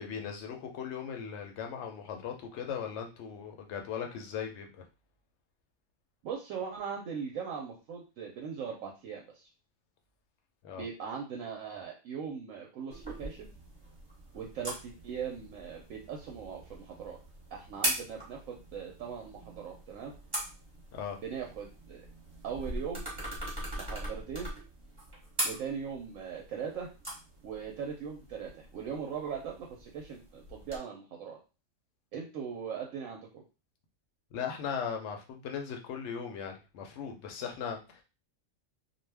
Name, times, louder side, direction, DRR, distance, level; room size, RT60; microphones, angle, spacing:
voice 1, 0.0-4.8 10.6-10.8 20.9-21.2 34.3-38.0, left 7 dB, 65° left, 3 dB, 0.8 m, -38 dB
voice 2, 6.2-9.5 10.8-13.5 14.3-17.2 17.5-20.1 21.2-22.0 22.4-23.0 23.8-24.5 25.4-26.9 27.4-31.4 32.1-33.3, right 7 dB, 75° right, 0 dB, 0.9 m, -39 dB
sound 1, 12.9-30.8, right 1 dB, 25° right, 0.9 m, -41 dB
2.5 x 2.2 x 3.3 m, 0.31 s
omnidirectional pair, 1.5 m